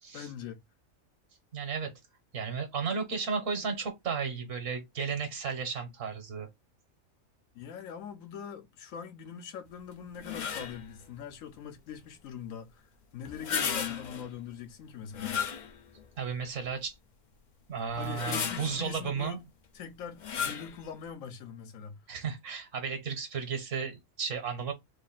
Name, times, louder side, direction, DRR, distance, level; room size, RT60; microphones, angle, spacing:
voice 1, 0.1-0.6 7.5-12.8 13.1-15.4 18.0-19.4 19.7-22.0, left 7 dB, 80° left, 1.0 m, -42 dB
voice 2, 1.5-1.9 2.3-6.5 16.2-16.9 17.7-19.4 22.1-24.7, right 5 dB, 65° right, 1.4 m, -34 dB
sound 1, 10.2-10.9 13.3-14.3 15.1-16.0 16.6-16.7 17.9-18.9 20.2-20.8, left 7 dB, 60° left, 0.4 m, -34 dB
3.1 x 2.5 x 4.0 m
omnidirectional pair, 1.4 m